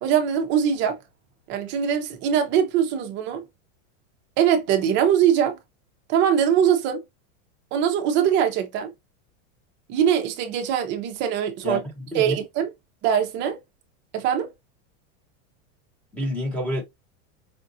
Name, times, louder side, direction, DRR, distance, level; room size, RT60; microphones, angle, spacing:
voice 1, 0.0-1.0 1.5-3.4 4.4-5.6 6.1-7.0 7.7-8.9 9.9-11.8 12.1-12.7 13.0-13.6 14.1-14.5, right 9 dB, 30° right, 0.7 m, -22 dB
voice 2, 11.6-12.4 16.1-16.8, equal, 5° left, 1.1 m, -28 dB
5.1 x 2.4 x 2.7 m
supercardioid pair, 165°, 39 cm